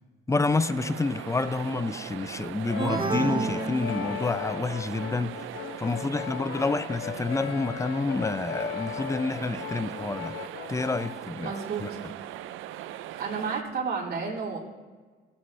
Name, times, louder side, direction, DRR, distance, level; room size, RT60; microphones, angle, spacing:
voice 1, 0.3-5.4 5.8-10.3 10.7-11.5 11.8-11.9, left 3 dB, 15° left, 0.5 m, -28 dB
sound 1, 0.5-13.6, right 13 dB, 85° right, 0.5 m, -40 dB
Brass instrument, 2.7-11.2, left 11 dB, 80° left, 0.5 m, -38 dB
sound 2, 2.8-4.6, right 4 dB, 25° right, 1.0 m, -30 dB
voice 2, 11.4-12.0 13.1-14.6, right 5 dB, 55° right, 4.1 m, -31 dB
18.0 x 8.6 x 3.2 m
cardioid pair, 90°, 20 cm